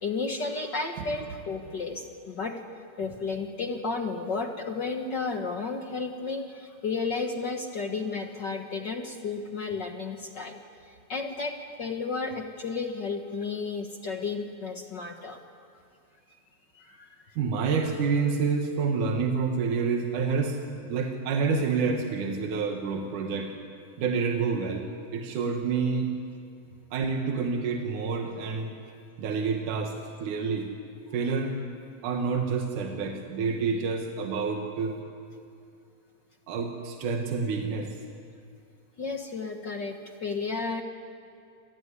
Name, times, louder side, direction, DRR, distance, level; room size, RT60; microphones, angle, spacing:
voice 1, 0.0-2.5 3.0-10.6 10.9-15.4 16.7-17.4 39.0-40.8, left 4 dB, 50° left, 4 dB, 1.5 m, -33 dB
voice 2, 17.4-20.6 20.8-23.5 24.0-24.9 25.1-26.1 26.9-28.7 29.2-29.9 30.2-30.7 31.1-31.5 32.0-35.0 36.5-38.0, right 5 dB, 75° right, 3 dB, 3.1 m, -28 dB
28.0 x 20.0 x 9.7 m, 2.4 s
omnidirectional pair, 3.5 m